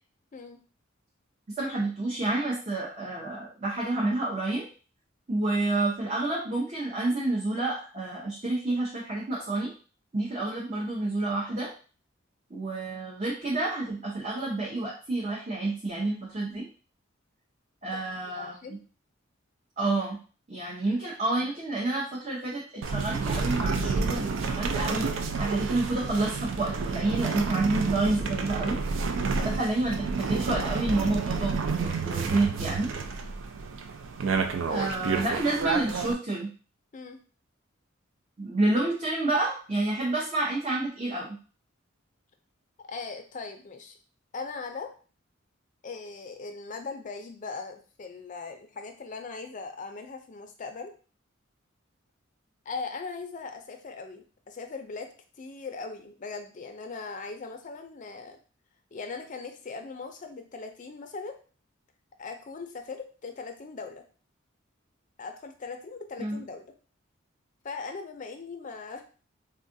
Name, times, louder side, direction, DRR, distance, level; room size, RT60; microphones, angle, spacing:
voice 1, 1.6-4.6 5.3-9.7 10.1-11.7 12.5-16.6 17.8-18.5 19.8-20.2 20.5-28.8 29.4-32.9 34.7-36.5 38.4-41.4 66.2-66.4, right 2 dB, 35° right, -5 dB, 0.7 m, -29 dB
voice 2, 17.9-18.8 29.4-29.6 34.6-35.3 36.9-37.2 42.8-44.0 44.3-44.9 45.8-50.9 52.7-55.1 55.4-58.4 58.9-61.4 62.2-64.0 65.2-66.7 67.6-69.0, left 4 dB, 40° left, 5 dB, 0.4 m, -39 dB
sound 1, 22.8-36.1, right 4 dB, 65° right, 0.3 m, -30 dB
3.6 x 2.3 x 2.6 m, 0.37 s
head